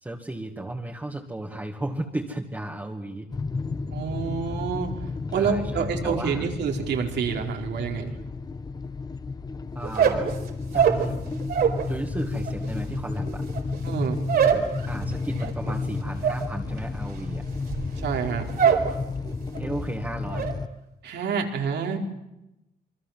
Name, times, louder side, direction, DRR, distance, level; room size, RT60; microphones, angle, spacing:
voice 1, 0.0-3.3 5.3-6.5 9.7-10.3 10.7-11.2 11.9-13.4 14.9-17.4 19.5-20.5, right 1 dB, 10° right, -1 dB, 2.2 m, -34 dB
sound 1, 3.3-20.7, left 4 dB, 25° left, 1.1 m, -32 dB
voice 2, 3.9-4.9 5.3-8.1 13.8-14.2 18.0-18.6 21.0-22.0, right 6 dB, 85° right, 2 dB, 4.8 m, -28 dB
Squeaky window cleaner, 9.8-11.9 12.2-18.9 19.2-19.7 20.0-20.5, right 7 dB, 65° right, 4.5 m, -25 dB
27.5 x 24.5 x 7.6 m, 0.91 s
cardioid pair, 150°, 17 cm